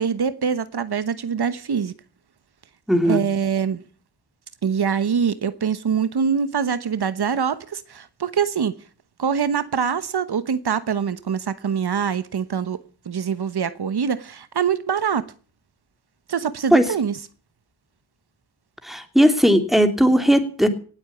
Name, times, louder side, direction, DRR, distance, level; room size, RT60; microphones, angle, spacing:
voice 1, 0.0-1.9 3.0-3.8 4.6-8.7 9.2-12.8 13.1-15.2 16.3-17.2, right 7 dB, 80° right, 1.1 m, -24 dB
voice 2, 2.9-3.2 16.7-16.9 18.8-20.7, equal, ahead, 2.9 m, -17 dB
18.5 x 8.2 x 8.6 m
wide cardioid pair, 65°, 39 cm